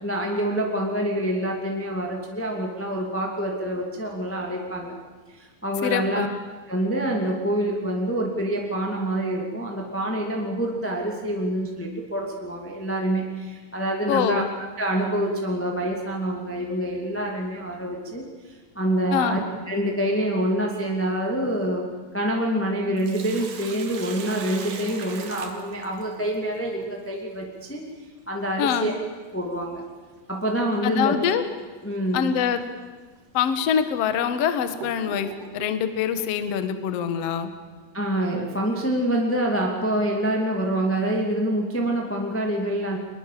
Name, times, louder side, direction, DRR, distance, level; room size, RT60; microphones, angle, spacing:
voice 1, 0.0-4.9 5.3-6.3 6.7-14.4 14.8-18.2 18.7-19.4 19.7-21.9 22.1-27.8 28.3-28.9 29.3-29.8 30.3-31.2 31.8-32.3 37.9-43.0, right 1 dB, 5° left, 0 dB, 1.2 m, -26 dB
voice 2, 5.8-6.3 14.1-14.4 19.1-19.4 28.6-28.9 30.8-31.4 32.1-32.6 33.3-35.3 35.5-37.5, left 8 dB, 90° left, 10 dB, 1.4 m, -24 dB
Sink (filling or washing), 23.0-26.4 28.8-28.9 30.7-30.9 31.4-31.5 32.3-32.5 33.2-33.3 33.9-35.8, right 6 dB, 55° right, 2.8 m, -39 dB
23.5 x 21.0 x 7.6 m, 1.4 s
omnidirectional pair, 5.1 m